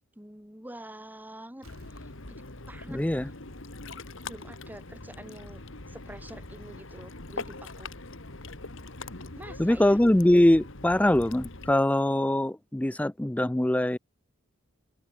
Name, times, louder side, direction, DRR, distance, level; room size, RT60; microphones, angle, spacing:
voice 1, 0.0-1.7 1.9-2.4 2.7-3.0 4.3-5.6 5.9-7.9 9.3-10.0, right 1 dB, 10° right, 3.2 m, -46 dB
Ocean, 1.6-11.7, left 2 dB, 60° left, 2.3 m, -42 dB
Explosion, 1.6-4.2 4.6-4.7, right 1 dB, 90° right, 4.9 m, -59 dB
voice 2, 2.9-3.3 9.6-14.0, left 1 dB, 5° left, 0.4 m, -23 dB
head